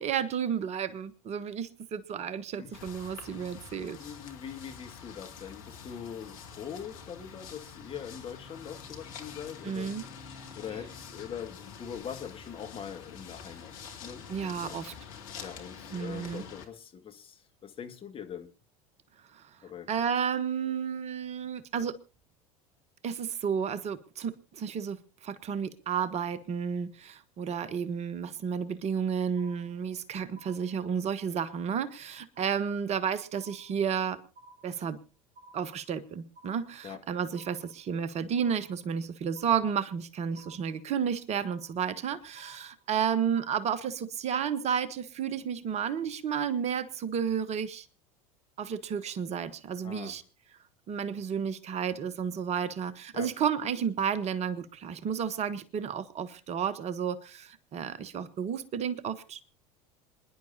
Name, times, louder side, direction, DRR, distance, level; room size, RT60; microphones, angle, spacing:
voice 1, 0.0-4.0 9.6-10.0 14.3-14.9 15.9-16.4 19.3-19.5 19.9-22.0 23.0-34.2 34.6-35.0 35.5-47.9 48.6-50.2 50.9-59.4, right 7 dB, 35° right, 1.0 m, -32 dB
sound 1, 2.7-16.7, left 6 dB, 65° left, 2.4 m, -46 dB
voice 2, 4.0-9.9 10.2-13.7 14.0-14.8 15.4-18.5 19.6-19.9 36.8-37.0 49.8-50.2 53.1-53.3, left 8 dB, 30° left, 1.9 m, -42 dB
sound 2, 29.4-30.0 30.4-31.0 31.4-32.0 32.4-33.0 33.4-34.0 34.4-35.0 35.4-36.0 36.4-37.0 37.4-38.0 38.4-39.0 39.4-40.0 40.4-41.0 41.4-42.0 42.4-43.0 43.4-44.0 44.4-44.6, right 2 dB, 60° right, 1.9 m, -55 dB
26.5 x 10.5 x 2.8 m
figure-of-eight pair, 75°, 19 cm